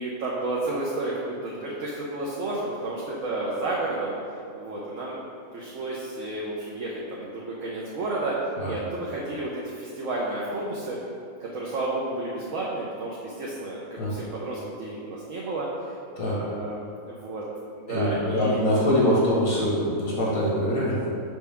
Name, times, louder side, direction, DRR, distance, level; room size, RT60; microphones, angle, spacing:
voice 1, 0.0-4.1 4.6-5.2 5.5-11.0 11.4-15.9 16.3-17.4 17.7-18.6, right 2 dB, 70° right, -5 dB, 1.2 m, -31 dB
voice 2, 17.9-21.0, equal, 85° left, -6 dB, 2.0 m, -23 dB
6.1 x 5.5 x 3.5 m, 2.5 s
omnidirectional pair, 1.5 m